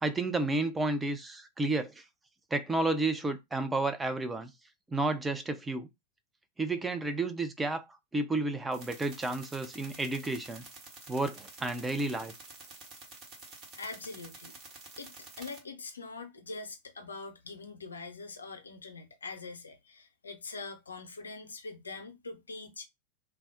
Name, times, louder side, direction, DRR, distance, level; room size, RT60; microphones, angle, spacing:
voice 1, 0.0-2.0 2.5-4.5 4.9-5.9 6.6-7.9 8.1-10.6 11.1-12.3, right 2 dB, 10° right, 0.5 m, -31 dB
sound 1, 8.7-15.6, right 3 dB, 30° right, 1.1 m, -50 dB
voice 2, 13.8-14.5 15.0-22.8, left 3 dB, 75° left, 0.6 m, -43 dB
2.2 x 2.0 x 3.6 m
figure-of-eight pair, 90°, 0 cm